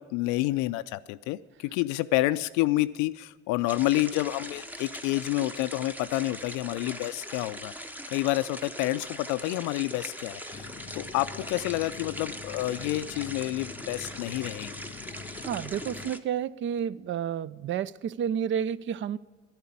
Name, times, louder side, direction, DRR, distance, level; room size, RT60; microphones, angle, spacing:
voice 1, 0.0-7.7 8.1-10.7 10.9-14.8, left 17 dB, 65° left, 0.5 m, -29 dB
sound 1, 3.7-16.2, equal, 5° right, 0.8 m, -41 dB
sound 2, 10.5-16.1, left 6 dB, 25° left, 0.6 m, -45 dB
voice 2, 15.4-19.2, right 8 dB, 40° right, 0.4 m, -30 dB
11.0 x 10.5 x 8.5 m
hypercardioid pair, 70°, 32 cm